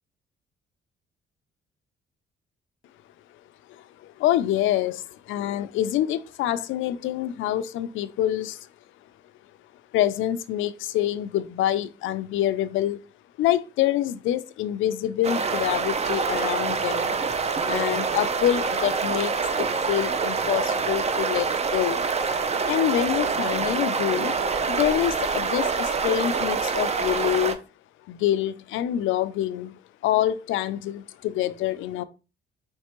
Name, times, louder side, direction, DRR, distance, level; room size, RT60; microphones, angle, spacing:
voice 1, 4.0-8.7 9.9-13.0 13.4-17.1 17.6-22.0 22.7-24.3 24.7-27.6 28.1-32.0, left 12 dB, 80° left, 0.4 m, -26 dB
sound 1, 15.2-27.5, right 5 dB, 35° right, 0.6 m, -26 dB
4.4 x 3.2 x 2.9 m
cardioid pair, 90°, 20 cm